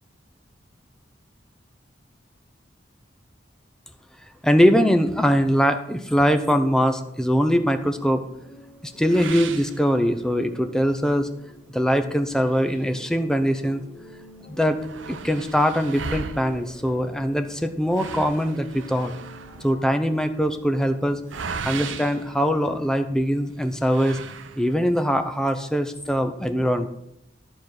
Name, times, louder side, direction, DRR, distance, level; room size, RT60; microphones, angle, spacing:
voice 1, 4.4-8.2 8.8-11.3 11.7-13.8 14.5-14.8 15.1-19.1 19.6-21.2 21.6-24.2 24.6-26.9, equal, 5° left, 7 dB, 0.6 m, -22 dB
sound 1, 7.6-22.4, left 1 dB, 60° left, 2.4 m, -48 dB
sound 2, 9.1-10.5 11.0-11.1 11.5-11.6 12.4-13.7 14.1-14.2 14.4-23.1 23.8-25.0, right 5 dB, 85° right, 0.6 m, -37 dB
12.0 x 4.5 x 6.5 m, 0.80 s
head